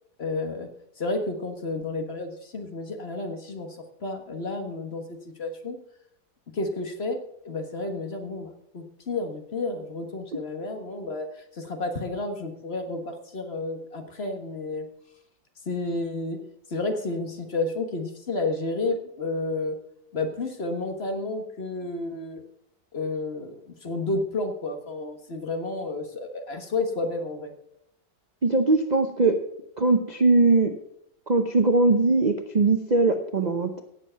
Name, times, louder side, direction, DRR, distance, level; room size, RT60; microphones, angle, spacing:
voice 1, 0.2-0.7 1.0-5.8 6.5-14.9 15.6-16.4 16.7-19.8 20.1-22.4 22.9-27.5, left 2 dB, 35° left, 5 dB, 1.5 m, -31 dB
voice 2, 28.4-29.4 29.8-30.7 31.3-33.8, right 3 dB, 65° right, 7 dB, 0.4 m, -21 dB
17.0 x 7.5 x 5.7 m, 0.74 s
omnidirectional pair, 2.0 m